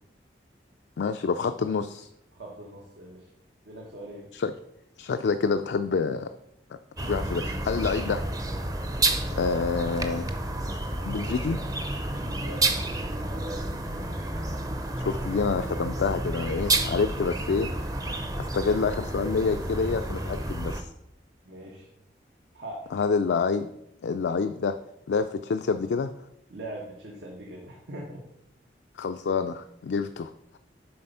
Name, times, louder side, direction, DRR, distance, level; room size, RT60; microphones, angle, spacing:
voice 1, 1.0-2.1 4.3-4.5 5.0-6.3 7.0-8.2 9.3-10.3 11.1-11.6 15.0-17.7 18.5-20.9 22.9-23.7 24.0-24.8 25.1-26.1 29.0-30.3, left 5 dB, 75° left, 8 dB, 0.4 m, -27 dB
voice 2, 2.3-3.3 3.6-4.3 12.1-12.7 13.1-14.1 21.4-21.9 22.5-22.9 26.5-28.2, right 1 dB, 80° right, -2 dB, 1.3 m, -41 dB
sound 1, 7.0-20.8, right 2 dB, 20° right, 0.6 m, -30 dB
7.7 x 4.1 x 5.5 m, 0.79 s
head